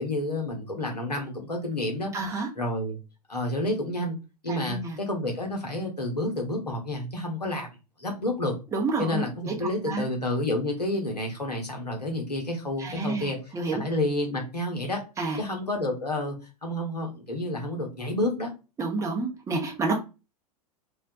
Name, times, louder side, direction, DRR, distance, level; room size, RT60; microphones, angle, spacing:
voice 1, 0.0-3.0 3.3-4.2 4.4-7.7 8.0-8.5 9.0-15.0 15.4-16.4 16.6-18.5, left 1 dB, 90° left, 2 dB, 0.8 m, -30 dB
voice 2, 2.1-2.5 4.5-5.0 8.7-9.5 9.8-10.1 12.8-13.8 15.2-15.4 18.8-20.0, right 3 dB, 15° right, 2 dB, 0.6 m, -29 dB
2.3 x 2.2 x 2.6 m, 0.29 s
figure-of-eight pair, 95°, 20 cm